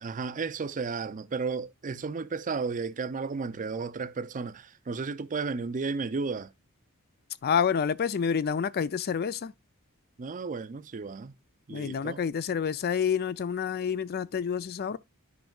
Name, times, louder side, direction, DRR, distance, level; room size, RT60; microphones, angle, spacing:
voice 1, 0.0-6.5 10.2-11.4 11.7-12.2, right 4 dB, 35° right, 0.5 m, -33 dB
voice 2, 7.4-9.5 11.7-15.0, left 7 dB, 45° left, 0.4 m, -28 dB
10.5 x 5.3 x 2.3 m
head